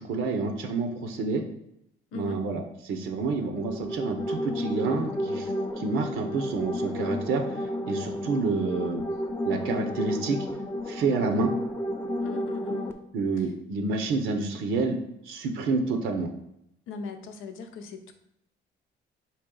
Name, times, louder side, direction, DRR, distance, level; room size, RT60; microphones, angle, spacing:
voice 1, 0.0-1.4 2.1-9.0 9.4-10.4 10.9-11.5 13.1-15.0 15.2-16.3, right 4 dB, 80° right, 5 dB, 0.7 m, -29 dB
voice 2, 2.1-2.5 12.2-12.9 13.4-13.5 16.9-18.1, left 5 dB, 85° left, 7 dB, 0.6 m, -39 dB
sound 1, 3.5-12.9, left 1 dB, 10° left, 0.5 m, -32 dB
4.3 x 3.0 x 3.7 m, 0.80 s
cardioid pair, 90°, 20 cm